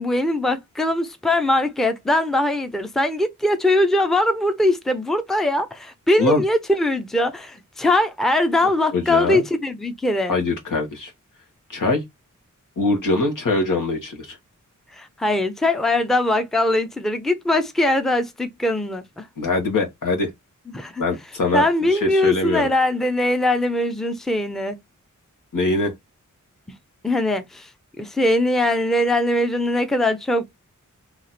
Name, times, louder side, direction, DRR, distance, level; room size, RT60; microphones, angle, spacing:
voice 1, 0.0-10.3 15.0-19.3 20.7-21.0 21.5-24.8 27.0-27.7 28.0-30.4, left 1 dB, ahead, 0.5 m, -21 dB
voice 2, 8.9-9.4 10.3-11.1 11.7-12.0 12.8-14.4 19.4-20.3 21.0-21.6 21.9-22.7 25.5-25.9, left 2 dB, 85° left, 1.5 m, -22 dB
3.0 x 2.9 x 4.1 m
wide cardioid pair, 115°, 31 cm